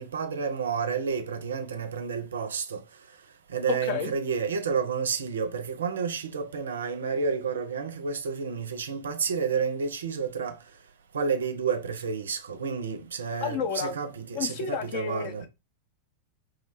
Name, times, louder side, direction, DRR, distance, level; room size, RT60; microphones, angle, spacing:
voice 1, 0.0-2.8 3.5-10.6 11.1-15.5, right 5 dB, 65° right, 0.4 m, -30 dB
voice 2, 13.4-13.9 14.4-15.5, left 6 dB, 45° left, 0.5 m, -31 dB
2.3 x 2.1 x 2.9 m
figure-of-eight pair, 90°, 0 cm